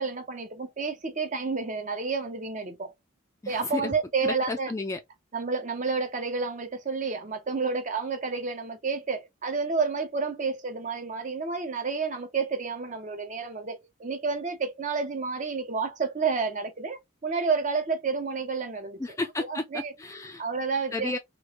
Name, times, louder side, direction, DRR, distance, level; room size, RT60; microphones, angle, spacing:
voice 1, 0.0-2.9 3.5-4.7 5.3-19.0 19.4-19.9 20.4-21.1, right 4 dB, 35° right, 0.6 m, -30 dB
voice 2, 3.4-3.9 4.2-5.0 19.0-20.4 20.9-21.2, left 2 dB, 15° left, 0.3 m, -32 dB
3.1 x 2.4 x 2.9 m
head